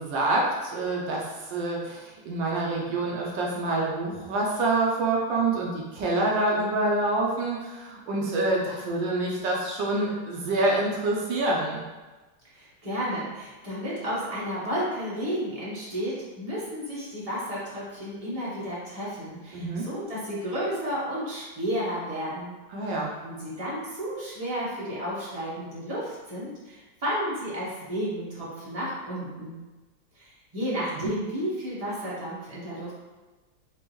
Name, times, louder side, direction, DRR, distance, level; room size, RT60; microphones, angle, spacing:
voice 1, 0.0-11.8 19.5-19.9 22.7-23.1 31.0-31.1, right 2 dB, 70° right, -2 dB, 1.2 m, -27 dB
voice 2, 12.5-22.6 22.9-29.6 30.1-32.9, equal, 30° right, -8 dB, 0.6 m, -32 dB
4.6 x 2.5 x 3.0 m, 1.2 s
omnidirectional pair, 2.3 m